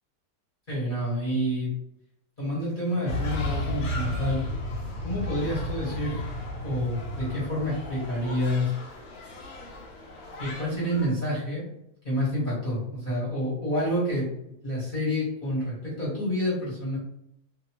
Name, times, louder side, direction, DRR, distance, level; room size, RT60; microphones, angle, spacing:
voice 1, 0.7-1.7 2.4-4.4 5.0-6.2 6.6-8.7 10.4-11.6 12.0-17.0, equal, 30° left, -8 dB, 1.3 m, -28 dB
sound 1, 3.1-11.1, left 1 dB, 70° left, 1.0 m, -34 dB
2.6 x 2.6 x 2.8 m, 0.78 s
omnidirectional pair, 1.7 m